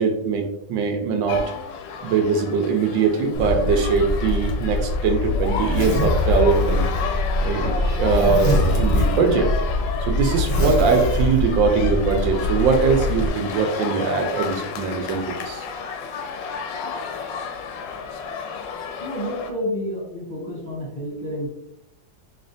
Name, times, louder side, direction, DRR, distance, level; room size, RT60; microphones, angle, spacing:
voice 1, 0.0-1.4 2.0-6.9 7.4-9.5 10.0-15.6, right 5 dB, 80° right, 4 dB, 1.3 m, -21 dB
sound 1, 1.3-19.5, left 6 dB, 80° left, 1.2 m, -32 dB
Zipper (clothing), 3.3-13.3, left 2 dB, 60° left, 0.4 m, -23 dB
voice 2, 19.0-21.5, equal, 15° left, -6 dB, 1.4 m, -29 dB
4.3 x 3.2 x 2.6 m, 0.87 s
omnidirectional pair, 2.0 m